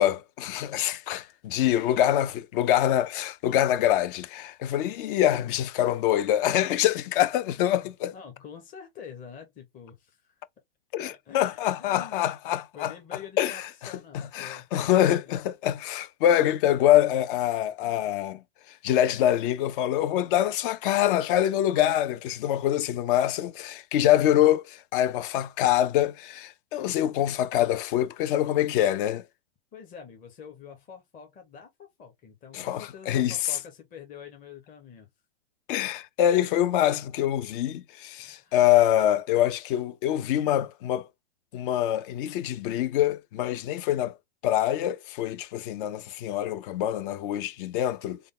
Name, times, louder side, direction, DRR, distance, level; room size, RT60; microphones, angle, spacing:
voice 1, 0.0-8.1 10.9-12.9 13.4-18.4 18.7-29.2 32.5-33.5 35.7-41.1 41.5-44.2 44.4-48.2, left 12 dB, 50° left, 0.5 m, -25 dB
voice 2, 1.6-2.1 5.3-5.5 7.5-10.4 11.0-12.2 12.7-15.5 17.8-18.1 27.5-27.7 29.7-35.1 38.2-38.6, left 7 dB, 25° left, 0.9 m, -47 dB
3.5 x 2.2 x 3.6 m
hypercardioid pair, 115°, 33 cm